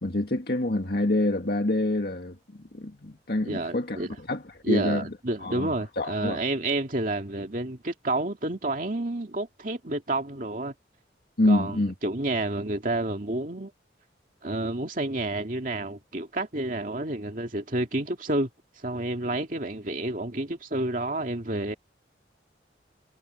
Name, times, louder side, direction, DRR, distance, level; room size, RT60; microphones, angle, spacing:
voice 1, 0.0-2.4 2.7-5.1 5.4-6.4 11.4-11.9, left 1 dB, 60° left, 1.9 m, -26 dB
voice 2, 3.4-4.2 4.6-10.7 11.5-11.8 12.0-13.7 14.4-18.5 18.8-21.7, right 2 dB, 50° right, 2.4 m, -29 dB
head